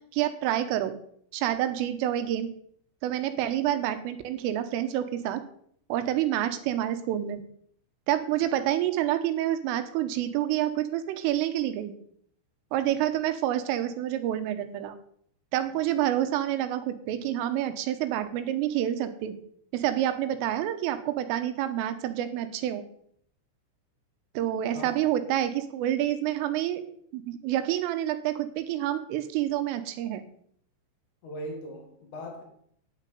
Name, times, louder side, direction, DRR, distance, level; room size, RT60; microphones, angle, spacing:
voice 1, 0.1-0.9 1.3-2.5 3.0-5.4 5.9-7.4 8.1-11.9 12.7-15.0 15.5-19.4 19.7-22.8 24.4-26.8 27.1-30.2, right 12 dB, 80° right, 3.6 m, -28 dB
voice 2, 24.7-25.1 31.2-32.4, equal, 50° left, 2.7 m, -39 dB
10.0 x 8.0 x 9.2 m
omnidirectional pair, 5.8 m